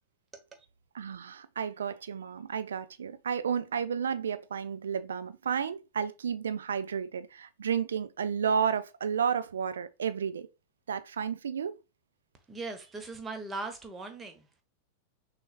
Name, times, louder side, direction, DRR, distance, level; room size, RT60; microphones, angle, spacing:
voice 1, 0.9-10.5 10.9-11.8, right 7 dB, 65° right, 0.4 m, -32 dB
voice 2, 12.5-14.5, right 3 dB, 15° right, 1.1 m, -39 dB
6.0 x 3.3 x 2.4 m
figure-of-eight pair, 90°, 0 cm